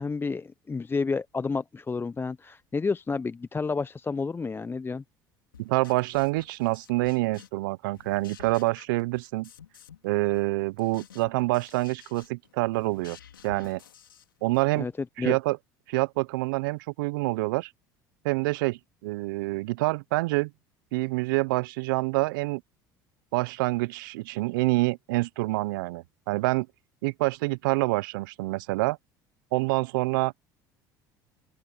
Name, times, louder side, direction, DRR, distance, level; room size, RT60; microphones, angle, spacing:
voice 1, 0.0-5.0 14.8-14.9 15.2-15.4, left 4 dB, 20° left, 0.7 m, -30 dB
sound 1, 5.5-7.7 7.9-10.1 10.3-14.7, left 9 dB, 90° left, 4.0 m, -51 dB
voice 2, 5.6-9.5 10.0-13.2 13.4-13.8 14.4-14.9 15.2-15.6 15.9-17.7 18.2-20.5 20.9-22.6 23.3-26.7 27.0-29.0 29.5-30.3, right 22 dB, 75° right, 0.8 m, -27 dB
open air
hypercardioid pair, 70°, 11 cm